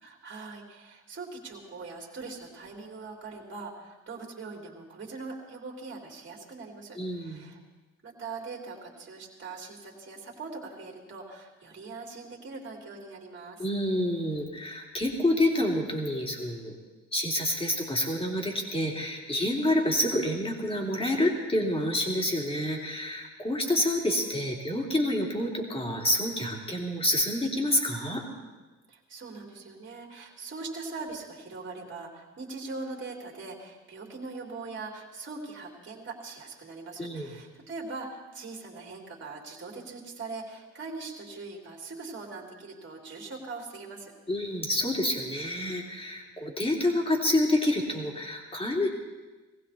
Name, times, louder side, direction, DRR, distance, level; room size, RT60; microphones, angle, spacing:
voice 1, 0.0-7.6 8.0-13.6 28.9-44.1, right 3 dB, 40° right, 0 dB, 3.2 m, -41 dB
voice 2, 7.0-7.4 13.6-16.8 17.1-28.2 37.0-37.3 44.3-48.9, left 1 dB, 20° left, 0 dB, 3.1 m, -28 dB
20.0 x 16.0 x 4.3 m, 1.2 s
cardioid pair, 90°, 30 cm